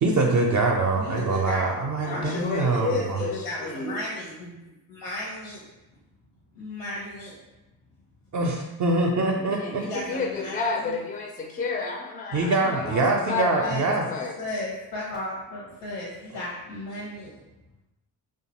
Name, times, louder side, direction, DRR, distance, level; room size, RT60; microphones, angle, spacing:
voice 1, 0.0-3.2 8.3-9.8 12.3-14.1, right 2 dB, 45° right, 0 dB, 0.4 m, -24 dB
voice 2, 0.9-1.8 2.0-4.5 4.9-5.6 6.6-7.3 9.8-10.9 13.6-13.8 14.4-17.3, left 1 dB, 75° left, -6 dB, 0.8 m, -35 dB
voice 3, 2.0-4.0 9.4-14.3, left 4 dB, 20° left, 1 dB, 0.4 m, -31 dB
2.5 x 2.3 x 2.9 m, 0.99 s
supercardioid pair, 55°, 43 cm